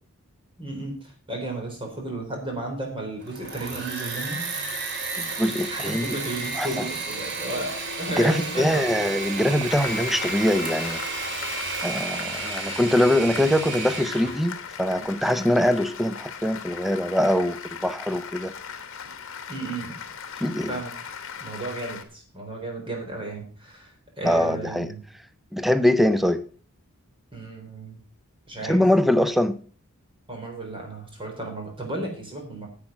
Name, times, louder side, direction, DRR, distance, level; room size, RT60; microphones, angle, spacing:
voice 1, 0.6-0.9 1.3-4.4 5.7-8.8 19.5-19.9 20.7-20.9 21.4-25.0 27.3-28.0 28.5-28.8 30.3-32.7, right 2 dB, 25° right, 4.0 m, -33 dB
Engine / Mechanisms, 3.2-14.4, right 3 dB, 55° right, 2.5 m, -32 dB
voice 2, 5.2-6.2 6.5-6.8 8.2-11.0 11.8-18.5 20.4-20.7 24.2-24.9 25.5-26.5 28.6-29.6, left 1 dB, ahead, 0.5 m, -23 dB
Applause, 9.7-22.0, left 7 dB, 65° left, 1.4 m, -38 dB
10.5 x 7.6 x 6.0 m
head